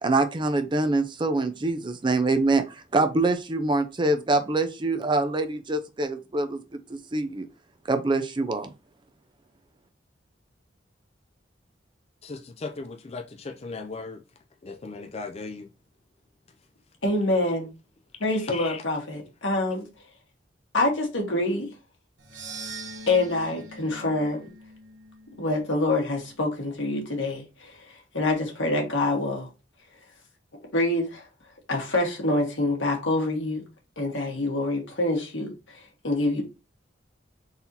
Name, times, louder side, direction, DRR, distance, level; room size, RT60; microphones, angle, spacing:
voice 1, 0.0-7.5 7.9-8.7, right 2 dB, 25° right, 0.5 m, -25 dB
voice 2, 12.2-14.2 14.6-15.7 18.4-18.8, left 3 dB, 35° left, 0.5 m, -37 dB
voice 3, 17.0-17.7 18.2-19.8 20.7-21.7 23.1-24.4 25.4-29.5 30.7-31.2 31.7-33.6 34.0-36.4, left 2 dB, 90° left, 1.6 m, -26 dB
sound 1, 22.2-26.5, right 3 dB, 70° right, 1.1 m, -43 dB
4.0 x 2.8 x 3.9 m
head